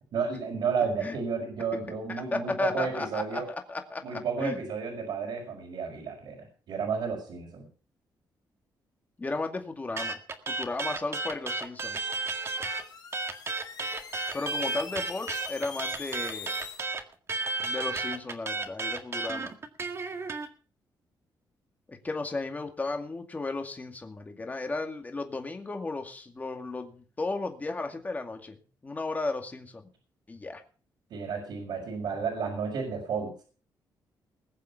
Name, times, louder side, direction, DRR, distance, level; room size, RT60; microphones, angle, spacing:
voice 1, 0.1-3.5 4.0-7.7 31.1-33.3, right 5 dB, 80° right, -3 dB, 5.4 m, -32 dB
voice 2, 2.3-4.6 9.2-10.2 10.5-12.0 14.3-16.5 17.6-19.5 21.9-29.9 30.3-30.6, left 3 dB, 20° left, 5 dB, 2.2 m, -34 dB
sound 1, 10.0-12.8 13.1-20.5, right 3 dB, 35° right, 1.8 m, -33 dB
sound 2, 12.0-16.8, left 6 dB, 60° left, 3.9 m, -44 dB
20.5 x 7.5 x 5.8 m, 0.39 s
cardioid pair, 130°, 8 cm